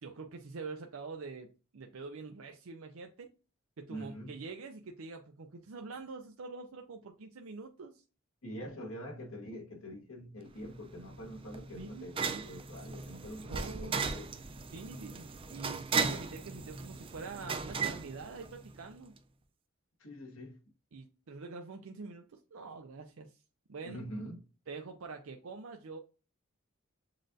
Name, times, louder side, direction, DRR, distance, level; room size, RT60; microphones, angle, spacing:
voice 1, 0.0-3.3 3.8-8.0 11.8-12.1 13.5-14.0 14.7-19.1 20.9-23.4 23.7-24.0 24.7-26.0, right 4 dB, 85° right, 0.5 m, -45 dB
voice 2, 3.9-4.3 8.4-14.3 20.0-20.6 23.8-24.5, equal, 75° left, 1.3 m, -45 dB
sound 1, 10.6-18.9, right 5 dB, 25° right, 0.4 m, -37 dB
7.3 x 2.5 x 2.6 m
head